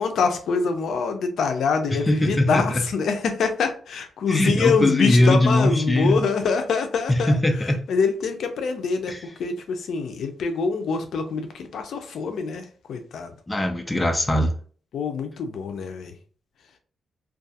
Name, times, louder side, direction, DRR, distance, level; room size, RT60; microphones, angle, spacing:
voice 1, 0.0-7.4 7.9-9.1 9.4-11.5 11.7-12.6 12.9-13.3 14.9-16.1, left 5 dB, 75° left, 6 dB, 0.4 m, -25 dB
voice 2, 1.9-2.8 4.3-6.2 7.1-7.8 9.1-9.3 13.5-14.5, left 1 dB, 15° left, 4 dB, 0.4 m, -21 dB
2.3 x 2.3 x 2.7 m, 0.43 s
wide cardioid pair, 140°, 0 cm